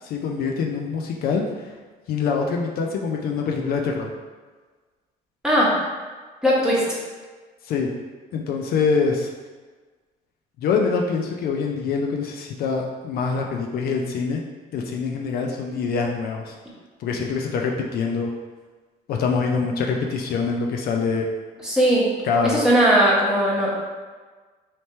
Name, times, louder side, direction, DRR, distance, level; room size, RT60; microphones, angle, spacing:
voice 1, 0.0-1.7 2.1-4.1 7.6-7.9 8.3-9.3 10.6-14.4 14.7-16.5 17.0-18.3 19.1-21.3 22.2-22.7, left 5 dB, 65° left, 1 dB, 0.5 m, -24 dB
voice 2, 6.4-6.8 21.6-22.1 22.4-23.8, equal, 5° right, -7 dB, 1.2 m, -18 dB
3.2 x 2.9 x 4.3 m, 1.4 s
cardioid pair, 110°, 17 cm